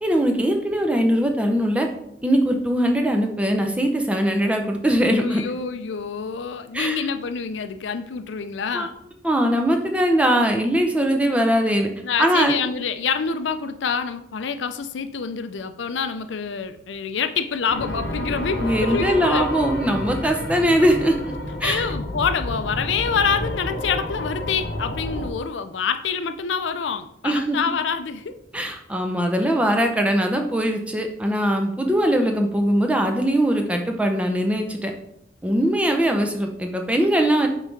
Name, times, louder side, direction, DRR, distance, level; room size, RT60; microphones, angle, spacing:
voice 1, 0.0-1.9 2.2-5.4 6.7-7.0 8.7-8.9 9.2-11.9 12.2-12.6 18.6-21.2 21.6-21.9 27.2-27.6 28.5-34.9 35.4-37.5, equal, 5° right, 4 dB, 0.6 m, -21 dB
voice 2, 5.1-8.9 12.0-19.5 21.6-28.4 35.6-35.8, left 6 dB, 90° left, 10 dB, 0.5 m, -26 dB
sound 1, 17.7-25.3, left 1 dB, 55° left, 0.8 m, -30 dB
5.7 x 4.0 x 4.6 m, 0.78 s
head